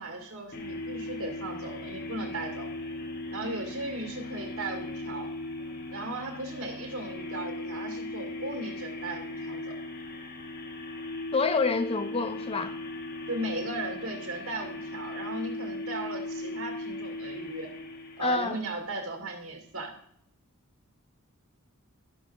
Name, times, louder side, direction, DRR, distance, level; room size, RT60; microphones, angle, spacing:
voice 1, 0.0-2.7 3.3-5.3 5.9-9.8 13.3-17.7 18.2-19.9, right 2 dB, 70° right, 2.3 m, -37 dB
sound 1, 0.5-18.8, left 2 dB, 45° left, 0.9 m, -38 dB
voice 2, 11.3-12.7 18.2-18.6, left 4 dB, 25° left, 0.5 m, -27 dB
16.0 x 6.0 x 2.6 m
head